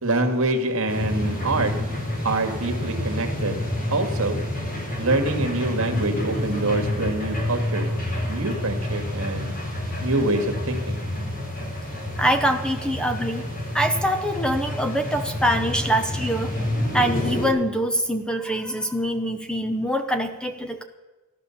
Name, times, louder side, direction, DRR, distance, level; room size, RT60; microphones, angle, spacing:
voice 1, 0.0-1.7 2.2-3.6 3.9-4.4 5.0-7.9 8.3-9.6 10.0-11.0, right 2 dB, 65° right, 5 dB, 2.1 m, -25 dB
sound 1, 0.9-17.5, left 1 dB, 40° left, 4.5 m, -28 dB
voice 2, 12.2-13.4 13.7-16.5 16.9-20.8, equal, 5° left, 7 dB, 0.8 m, -24 dB
15.5 x 11.5 x 7.2 m, 1.2 s
head